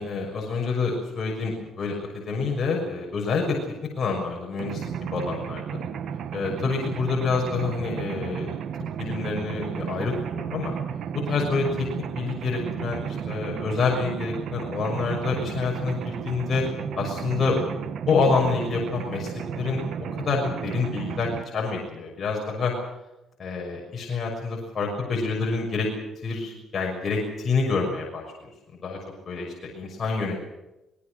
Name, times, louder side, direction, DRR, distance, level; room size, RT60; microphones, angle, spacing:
voice 1, 0.0-3.6 4.0-5.8 6.3-8.6 9.0-10.7 11.2-11.9 12.1-16.6 16.9-17.6 18.1-19.8 20.1-22.7 23.4-25.9 26.2-28.2 28.8-29.0 29.3-30.4, left 4 dB, 35° left, -2 dB, 6.4 m, -27 dB
Mechanisms, 4.6-21.4, right 8 dB, 60° right, 1.6 m, -33 dB
25.0 x 20.0 x 6.5 m, 0.94 s
cardioid pair, 130°, 0 cm